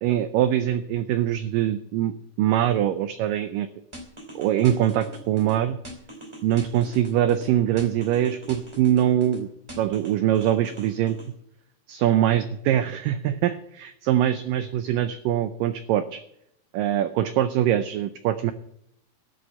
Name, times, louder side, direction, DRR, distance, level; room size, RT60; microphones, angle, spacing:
voice 1, 0.0-2.1 2.4-3.7 4.4-5.8 6.4-9.5 9.8-11.2 11.9-16.2 16.7-18.5, right 11 dB, 90° right, 11 dB, 1.9 m, -23 dB
sound 1, 3.9-5.5 5.8-7.5 7.8-9.4 9.7-11.3, right 1 dB, 10° right, 1.9 m, -41 dB
13.0 x 6.4 x 8.3 m, 0.74 s
omnidirectional pair, 4.6 m